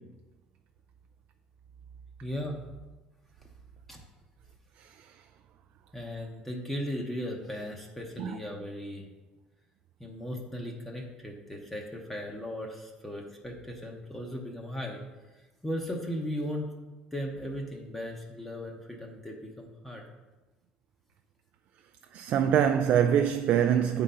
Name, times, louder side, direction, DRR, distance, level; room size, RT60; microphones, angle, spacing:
voice 1, 2.2-2.6 3.9-4.0 5.9-9.0 10.0-15.0 15.6-16.7 17.1-20.0, equal, 5° left, 0.9 m, -37 dB
voice 2, 22.1-24.0, right 9 dB, 55° right, 0.3 m, -24 dB
8.1 x 3.8 x 5.5 m
cardioid pair, 155°, 3 cm